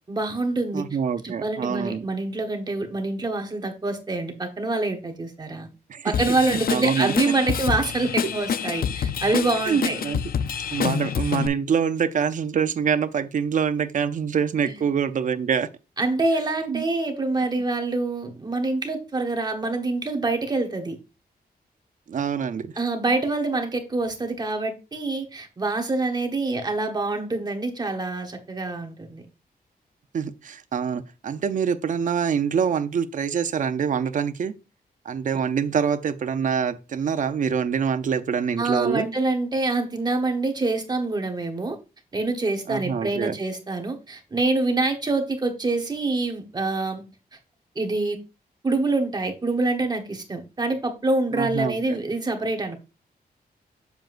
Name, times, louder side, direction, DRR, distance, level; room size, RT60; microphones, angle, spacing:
voice 1, 0.1-0.8 1.2-5.7 6.0-10.0 14.6-14.7 16.0-21.0 22.8-29.2 38.6-41.8 42.1-47.0 47.7-48.2 48.6-52.8, right 2 dB, 25° right, 1.2 m, -26 dB
voice 2, 0.7-2.1 5.9-6.1 6.5-7.1 8.2-8.3 9.7-10.2 10.7-15.7 16.7-16.8 22.1-22.7 30.1-34.5 35.0-39.1 42.7-43.3 51.3-52.0, right 7 dB, 50° right, 0.6 m, -25 dB
Drum kit / Drum, 6.1-11.5, left 7 dB, 65° left, 0.5 m, -27 dB
7.6 x 7.1 x 2.5 m
wide cardioid pair, 155°, 16 cm